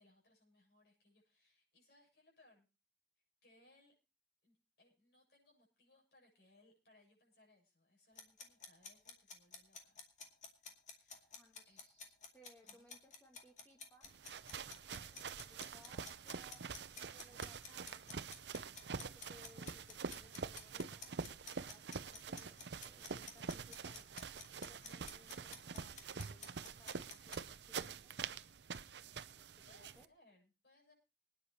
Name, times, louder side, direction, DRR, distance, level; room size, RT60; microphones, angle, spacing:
voice 1, 0.0-2.7 3.4-3.9 4.4-10.0 10.9-11.9 12.6-12.9 29.6-30.9, left 1 dB, 70° left, -1 dB, 7.4 m, -69 dB
sound 1, 8.2-27.4, left 5 dB, 45° left, 2.3 m, -52 dB
voice 2, 11.3-14.1 14.9-18.0 18.8-21.1 21.6-26.5 26.8-28.0 29.4-30.1, equal, 15° left, 0 dB, 1.7 m, -65 dB
sound 2, 14.0-30.1, right 5 dB, 85° right, 0.7 m, -46 dB
25.0 x 10.0 x 2.8 m, 0.29 s
head